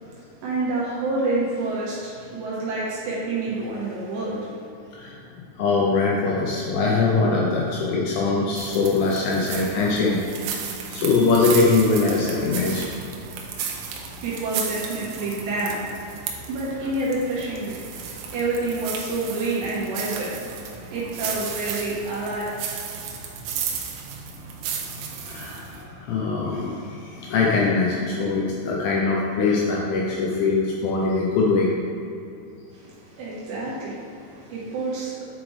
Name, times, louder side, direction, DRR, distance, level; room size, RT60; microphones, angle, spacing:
voice 1, 0.4-5.1 13.8-23.1 32.7-35.2, right 2 dB, 70° right, -7 dB, 3.1 m, -29 dB
voice 2, 5.6-10.2 10.9-12.9 24.9-31.7, left 4 dB, 80° left, -3 dB, 2.4 m, -22 dB
sound 1, 8.6-25.8, right 7 dB, 90° right, 3.3 m, -34 dB
9.7 x 5.0 x 3.2 m, 2.6 s
omnidirectional pair, 5.5 m